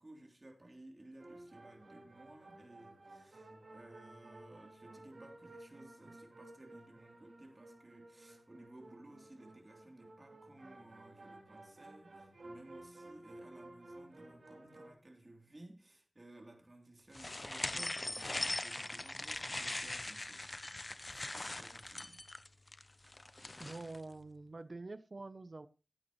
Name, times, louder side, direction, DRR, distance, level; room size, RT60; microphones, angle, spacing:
voice 1, 0.0-22.2, right 1 dB, 35° right, 3.3 m, -57 dB
sound 1, 1.2-14.9, right 2 dB, 70° right, 4.5 m, -55 dB
sound 2, 17.1-24.0, left 2 dB, 35° left, 0.6 m, -41 dB
voice 2, 23.6-25.7, right 3 dB, 55° right, 0.7 m, -46 dB
16.0 x 9.0 x 3.1 m
wide cardioid pair, 80°, 0 cm